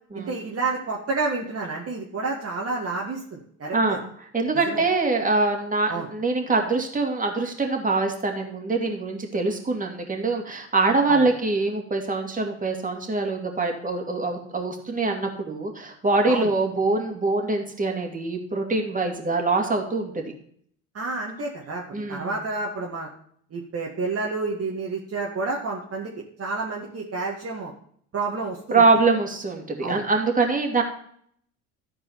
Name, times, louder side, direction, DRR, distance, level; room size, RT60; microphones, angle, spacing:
voice 1, 0.1-4.0 4.7-4.8 5.9-6.1 11.1-11.2 16.3-16.5 20.9-21.8 22.1-23.1 23.5-26.1 26.4-27.7 28.1-28.8 29.8-30.0, right 3 dB, 35° right, -2 dB, 2.0 m, -29 dB
voice 2, 4.3-20.1 21.9-22.3 28.7-30.8, right 3 dB, 20° right, 2 dB, 2.7 m, -24 dB
12.5 x 4.8 x 6.9 m, 0.63 s
hypercardioid pair, 70°, 39 cm